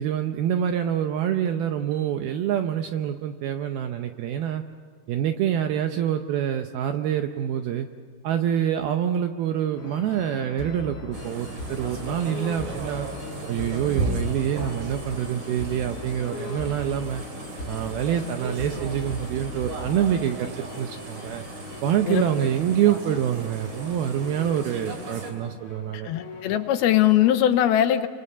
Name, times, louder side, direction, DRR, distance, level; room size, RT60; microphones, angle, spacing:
voice 1, 0.0-4.6 5.1-7.9 8.2-13.1 13.5-17.2 17.7-21.4 21.8-26.1, right 10 dB, 75° right, 6 dB, 2.3 m, -26 dB
sound 1, 9.8-27.4, left 3 dB, 40° left, 3.5 m, -40 dB
sound 2, 11.1-25.3, right 2 dB, 45° right, 4.4 m, -36 dB
voice 2, 26.0-28.1, left 12 dB, 75° left, 8 dB, 2.4 m, -20 dB
28.5 x 25.5 x 6.8 m, 2.1 s
omnidirectional pair, 5.1 m